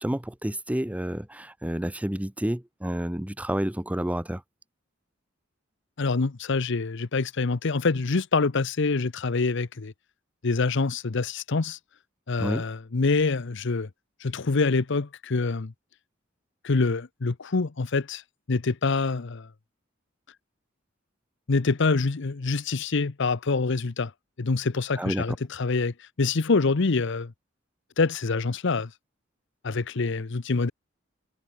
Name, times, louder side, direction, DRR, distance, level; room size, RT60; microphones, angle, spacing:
voice 1, 0.0-4.4 12.4-12.6 25.0-25.2, right 1 dB, 5° right, 0.8 m, -29 dB
voice 2, 6.0-9.9 10.4-11.8 12.3-13.9 14.2-15.7 16.6-18.2 18.5-19.5 21.5-24.1 24.4-27.3 28.0-28.9 29.6-30.7, left 4 dB, 65° left, 0.8 m, -25 dB
head